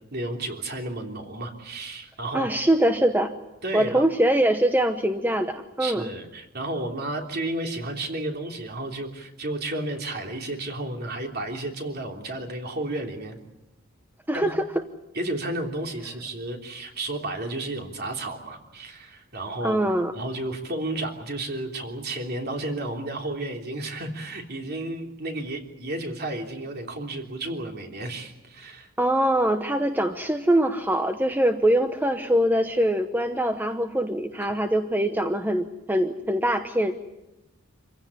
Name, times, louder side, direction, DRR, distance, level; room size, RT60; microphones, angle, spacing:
voice 1, 0.1-2.5 3.6-4.0 5.8-13.4 14.3-14.6 15.1-19.8 20.1-28.9, right 2 dB, 50° right, 2 dB, 3.3 m, -32 dB
voice 2, 2.3-3.3 3.7-6.0 14.3-14.6 19.6-20.1 29.0-36.9, right 1 dB, 10° right, 7 dB, 0.9 m, -23 dB
26.5 x 16.0 x 9.9 m, 0.97 s
head